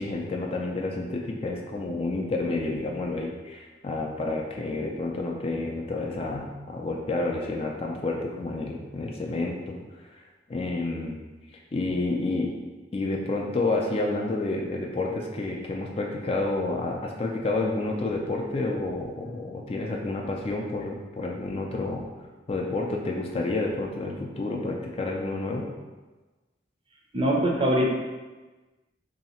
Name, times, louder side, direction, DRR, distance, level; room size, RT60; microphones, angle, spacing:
voice 1, 0.0-9.8 10.1-10.2 10.5-11.1 11.7-12.5 12.9-22.0 22.5-25.7, left 2 dB, 30° left, 0 dB, 0.3 m, -29 dB
voice 2, 27.1-27.9, equal, 30° right, -1 dB, 0.6 m, -22 dB
3.2 x 2.7 x 4.2 m, 1.2 s
head